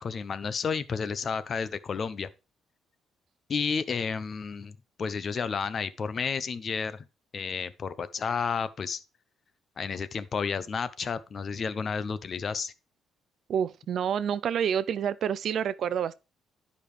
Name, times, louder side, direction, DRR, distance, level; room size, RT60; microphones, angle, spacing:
voice 1, 0.0-2.3 3.5-7.0 7.3-9.0 9.8-12.7, left 5 dB, 35° left, 0.5 m, -31 dB
voice 2, 13.5-16.2, right 8 dB, 55° right, 0.4 m, -28 dB
10.5 x 5.1 x 3.3 m
cardioid pair, 145°, 0 cm